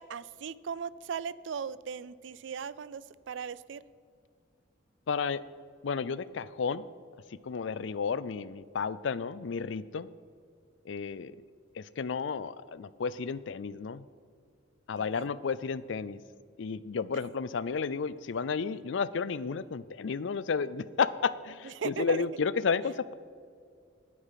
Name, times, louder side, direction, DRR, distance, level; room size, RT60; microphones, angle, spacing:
voice 1, 0.0-3.8 15.0-15.3 21.6-22.2, right 6 dB, 70° right, 18 dB, 0.4 m, -38 dB
voice 2, 5.1-5.4 5.8-6.8 7.4-10.1 10.9-11.3 11.8-14.0 14.9-16.2 16.6-23.1, left 5 dB, 70° left, 17 dB, 0.4 m, -32 dB
11.5 x 9.5 x 5.8 m, 2.2 s
head